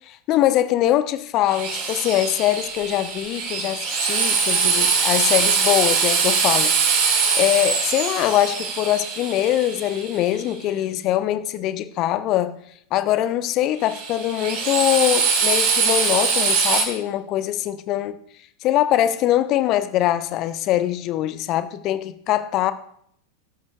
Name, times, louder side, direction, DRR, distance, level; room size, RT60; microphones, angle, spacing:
voice 1, 0.1-6.8 7.4-12.6 12.9-18.2 18.6-22.7, left 13 dB, 35° left, 0.8 m, -22 dB
Drill, 1.5-10.4 13.8-16.8, right 5 dB, 45° right, 4.3 m, -22 dB
22.0 x 12.5 x 2.3 m
figure-of-eight pair, 90°, 0 cm